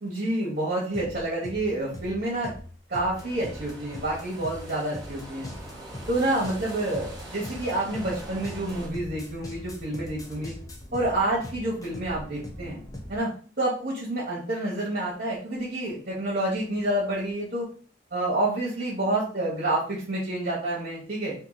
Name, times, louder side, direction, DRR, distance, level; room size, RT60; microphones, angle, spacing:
voice 1, 0.0-2.5 2.9-5.5 6.1-10.5 10.9-12.8 13.1-17.7 18.1-21.3, right 1 dB, 45° right, -5 dB, 1.2 m, -28 dB
sound 1, 0.9-13.2, left 1 dB, 20° left, 0.8 m, -41 dB
sound 2, 3.1-8.9, right 1 dB, 20° right, 1.5 m, -43 dB
4.5 x 2.7 x 4.1 m, 0.42 s
head